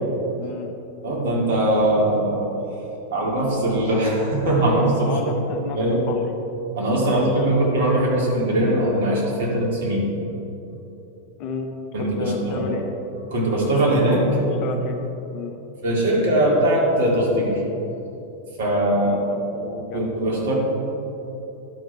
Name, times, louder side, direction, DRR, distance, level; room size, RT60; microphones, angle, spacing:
voice 1, 0.4-0.7 5.1-6.2 7.0-7.5 11.4-11.7 12.0-12.8 14.4-15.0 15.3-15.6 19.0-20.1, left 4 dB, 40° left, 4 dB, 0.8 m, -32 dB
voice 2, 1.0-2.5 3.1-5.2 5.7-6.1 6.7-10.1 11.9-12.7 13.3-14.4 15.8-17.6 18.6-19.2 19.9-20.6, right 1 dB, 55° right, -3 dB, 2.0 m, -21 dB
11.5 x 4.8 x 4.5 m, 2.9 s
figure-of-eight pair, 90°, 0 cm